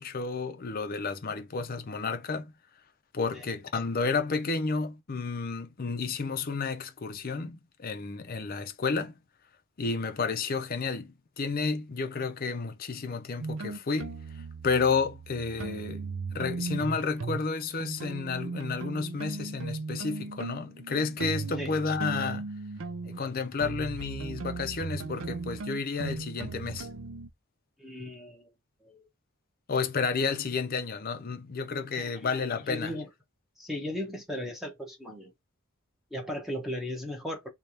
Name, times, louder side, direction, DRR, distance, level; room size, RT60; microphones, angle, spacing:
voice 1, 0.0-2.5 3.1-9.1 9.8-14.2 14.6-16.1 16.3-22.5 23.1-26.9 29.7-32.9, left 4 dB, 45° left, 0.5 m, -31 dB
sound 1, 13.4-17.5 17.8-27.3, right 3 dB, 70° right, 0.5 m, -37 dB
voice 2, 27.8-28.5 28.8-29.1 32.0-32.3 32.6-33.1 33.6-35.3 36.1-37.5, left 1 dB, ahead, 0.9 m, -37 dB
3.3 x 2.4 x 4.1 m
head